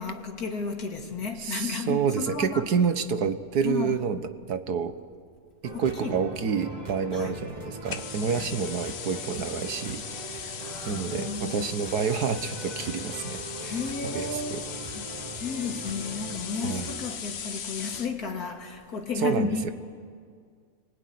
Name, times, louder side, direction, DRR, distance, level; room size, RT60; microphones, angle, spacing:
voice 1, 0.0-2.6 3.6-4.0 5.7-6.2 7.1-7.4 8.3-8.5 10.3-11.7 13.6-14.7 14.9-19.7, left 5 dB, 70° left, 2.7 m, -33 dB
voice 2, 1.4-4.2 4.5-5.0 5.6-10.0 10.9-13.8 14.1-14.6 16.6-16.9 19.2-19.7, right 6 dB, 80° right, 1.7 m, -28 dB
sound 1, 5.6-17.2, right 2 dB, 25° right, 2.2 m, -41 dB
sound 2, 7.9-18.2, left 7 dB, 50° left, 1.0 m, -38 dB
29.5 x 20.5 x 9.5 m
omnidirectional pair, 1.7 m